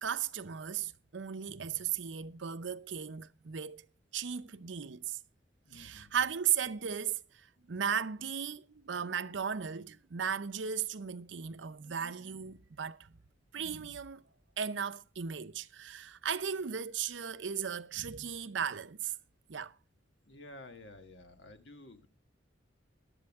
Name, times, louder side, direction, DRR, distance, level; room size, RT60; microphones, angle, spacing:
voice 1, 0.0-3.9 4.1-5.2 5.7-7.2 7.7-13.1 13.5-14.2 14.6-19.1 19.5-19.7, right 8 dB, 85° right, 0.7 m, -36 dB
voice 2, 5.6-6.1 20.2-22.1, left 2 dB, 70° left, 1.5 m, -52 dB
14.5 x 11.5 x 3.6 m
head